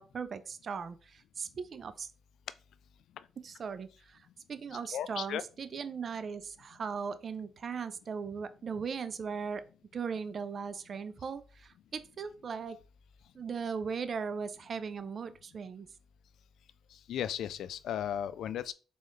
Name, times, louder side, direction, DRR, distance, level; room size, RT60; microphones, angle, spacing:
voice 1, 0.0-2.1 3.4-4.2 4.5-9.7 9.9-12.8 13.3-15.9, right 6 dB, 45° right, 0.4 m, -38 dB
voice 2, 4.9-5.4 17.1-18.7, left 10 dB, 75° left, 0.3 m, -35 dB
3.8 x 3.7 x 3.2 m
cardioid pair, 90°, 0 cm